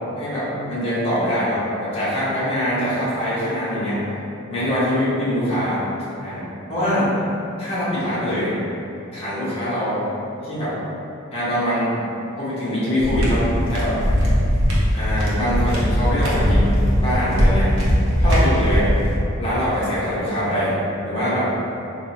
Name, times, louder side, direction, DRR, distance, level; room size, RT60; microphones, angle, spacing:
voice 1, 0.2-4.0 4.5-5.8 6.2-6.4 6.7-7.1 7.6-8.5 9.1-10.0 10.4-10.7 11.3-11.9 12.4-14.0 14.9-16.7 17.0-17.7 18.2-18.9 19.4-20.7 21.0-21.5, equal, 30° left, -11 dB, 1.2 m, -23 dB
sound 1, 13.0-19.1, equal, 85° right, 0.8 m, -19 dB
3.6 x 2.7 x 2.8 m, 2.8 s
head